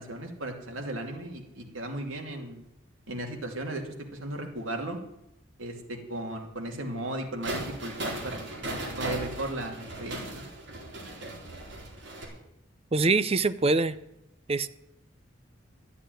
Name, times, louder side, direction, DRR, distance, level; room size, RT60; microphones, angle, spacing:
voice 1, 0.0-2.6 3.1-5.0 5.6-10.5, right 1 dB, 85° right, 3 dB, 2.6 m, -36 dB
sound 1, 7.4-12.2, right 1 dB, 60° right, 4.3 m, -37 dB
voice 2, 12.9-14.0 14.5-14.7, right 3 dB, 30° right, 14 dB, 0.6 m, -24 dB
13.0 x 8.3 x 9.2 m, 0.86 s
head